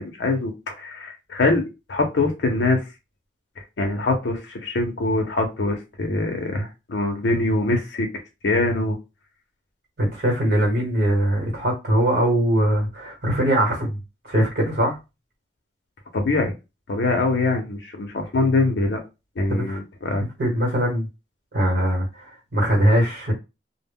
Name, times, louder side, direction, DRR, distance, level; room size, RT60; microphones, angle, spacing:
voice 1, 0.0-2.8 3.6-8.1 8.4-9.0 16.1-16.5 16.9-19.0 19.4-20.2, left 2 dB, 80° left, 0.6 m, -23 dB
voice 2, 10.0-14.0 14.2-15.0 19.5-19.8 20.2-21.1 21.5-23.3, equal, 60° right, 1.1 m, -21 dB
2.1 x 2.0 x 3.5 m
head